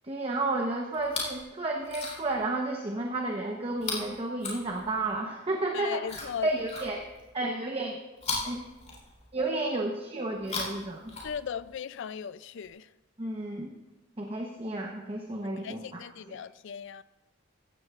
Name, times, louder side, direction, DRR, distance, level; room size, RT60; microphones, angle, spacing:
voice 1, 0.1-6.0 6.4-7.0 7.3-8.0 8.4-8.6 9.3-11.1 13.2-13.7 14.2-16.0 16.3-16.4, right 2 dB, 30° right, 0 dB, 1.0 m, -32 dB
Chewing mastication, 0.9-1.4 1.8-2.4 3.8-5.1 6.0-7.3 8.2-9.4 10.3-11.7 12.6-12.7, left 3 dB, 35° left, 3.8 m, -38 dB
voice 2, 5.7-6.5 11.2-12.9 15.4-17.0, left 8 dB, 65° left, 15 dB, 0.4 m, -37 dB
16.0 x 14.5 x 2.5 m, 1.1 s
head